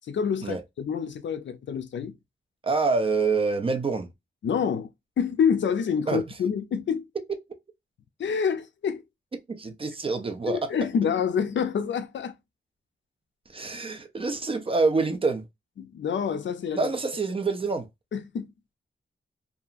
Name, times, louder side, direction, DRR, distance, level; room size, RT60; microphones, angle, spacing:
voice 1, 0.1-2.1 4.4-4.9 5.2-7.0 8.2-9.0 10.5-12.3 15.8-16.9 18.1-18.5, left 7 dB, 70° left, 0.4 m, -27 dB
voice 2, 2.6-4.1 6.1-6.2 9.5-10.7 13.5-15.5 16.7-17.9, right 4 dB, 30° right, 0.4 m, -26 dB
2.8 x 2.3 x 2.4 m
wide cardioid pair, 175°, 20 cm